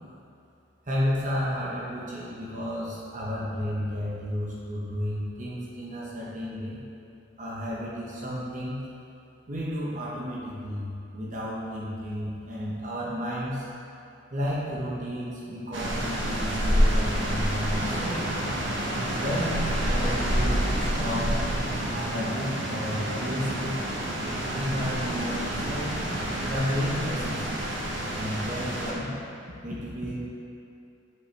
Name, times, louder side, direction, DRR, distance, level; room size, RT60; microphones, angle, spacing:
voice 1, 0.9-6.8 7.4-8.8 9.5-13.7 14.3-18.2 19.1-21.4 21.9-23.8 24.5-26.0 26.5-27.5 28.2-29.2 29.6-30.2, equal, 40° right, -6 dB, 1.0 m, -32 dB
sound 1, 15.7-28.9, equal, 70° right, 1.1 m, -28 dB
8.8 x 5.4 x 3.3 m, 2.7 s
head